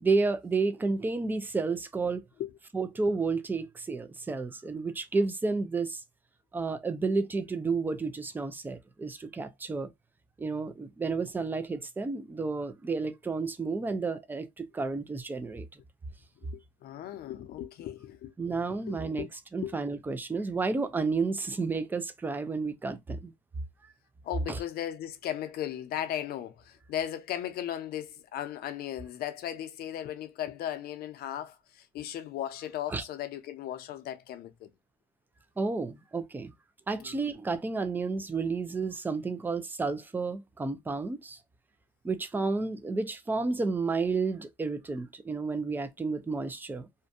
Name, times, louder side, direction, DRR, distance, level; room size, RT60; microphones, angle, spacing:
voice 1, 0.0-2.2 2.7-6.0 6.5-9.9 10.4-15.7 18.4-19.3 19.5-23.3 24.5-24.6 32.9-33.0 35.6-36.5 36.9-41.4 42.0-46.9, right 4 dB, 10° right, 0.4 m, -31 dB
voice 2, 16.4-18.3 18.9-19.3 19.6-19.7 24.2-34.7 37.0-37.2, left 11 dB, 65° left, 0.6 m, -37 dB
2.5 x 2.2 x 2.5 m
cardioid pair, 110°, 17 cm